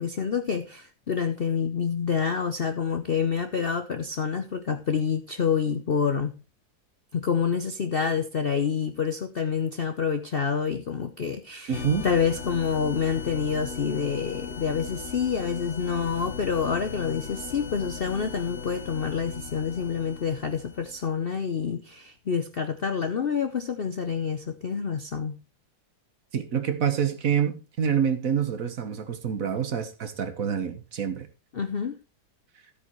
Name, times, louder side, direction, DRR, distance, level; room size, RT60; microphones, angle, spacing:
voice 1, 0.0-6.3 7.1-25.4 31.5-32.0, left 6 dB, 85° left, 0.5 m, -27 dB
sound 1, 11.7-21.1, left 6 dB, 45° left, 1.0 m, -38 dB
voice 2, 11.7-12.0 26.3-31.3, right 8 dB, 50° right, 1.4 m, -27 dB
13.5 x 8.5 x 3.1 m
omnidirectional pair, 2.1 m